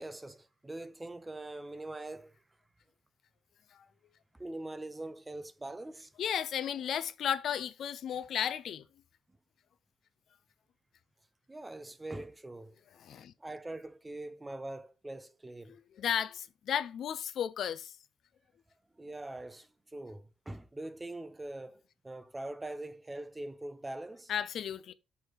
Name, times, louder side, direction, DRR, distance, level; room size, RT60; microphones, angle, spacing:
voice 1, 0.0-2.4 4.3-6.1 7.6-7.7 11.5-12.8 13.4-15.8 18.9-24.3, right 2 dB, 15° right, 0.6 m, -43 dB
voice 2, 6.2-8.8 13.0-13.3 16.0-17.9 24.3-24.9, left 9 dB, 65° left, 0.5 m, -34 dB
6.2 x 3.4 x 4.6 m
cardioid pair, 90°, 0 cm